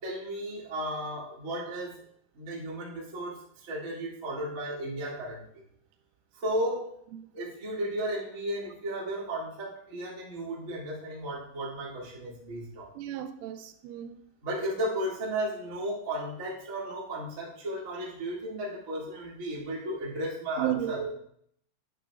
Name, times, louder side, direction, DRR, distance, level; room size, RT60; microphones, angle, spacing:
voice 1, 0.0-2.0 2.3-5.6 6.3-6.9 7.3-12.9 14.4-21.0, right 1 dB, 40° right, -6 dB, 1.1 m, -34 dB
voice 2, 13.0-14.2 20.6-21.1, right 12 dB, 85° right, 9 dB, 3.0 m, -33 dB
10.0 x 8.9 x 2.4 m, 0.66 s
omnidirectional pair, 5.8 m